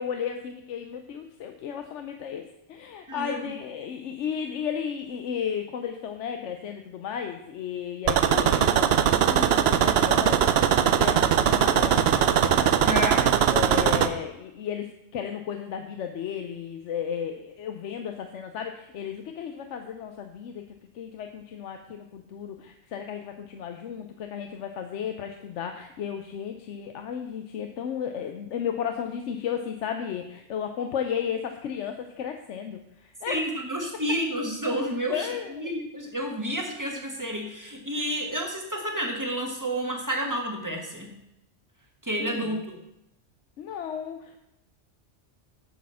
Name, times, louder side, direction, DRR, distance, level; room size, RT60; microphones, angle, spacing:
voice 1, 0.0-13.0 13.5-20.6 20.9-33.5 35.1-35.7 42.2-42.6 43.6-44.4, left 8 dB, 85° left, 6 dB, 1.0 m, -34 dB
voice 2, 3.1-3.5 12.8-13.3 33.3-41.1 42.0-42.8, equal, 15° right, 0 dB, 1.6 m, -30 dB
sound 1, 8.1-14.1, right 9 dB, 65° right, 0.8 m, -21 dB
8.4 x 6.3 x 5.6 m, 0.85 s
omnidirectional pair, 1.2 m